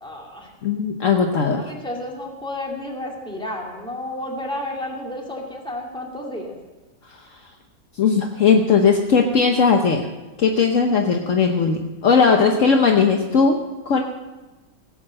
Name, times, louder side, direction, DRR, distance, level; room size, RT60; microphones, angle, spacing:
voice 1, 0.0-0.5 1.5-6.6, left 1 dB, 5° left, -1 dB, 2.4 m, -31 dB
voice 2, 0.6-1.6 7.9-10.1 10.4-14.0, left 5 dB, 60° left, 3 dB, 1.3 m, -18 dB
17.0 x 8.8 x 7.6 m, 1.1 s
omnidirectional pair, 1.6 m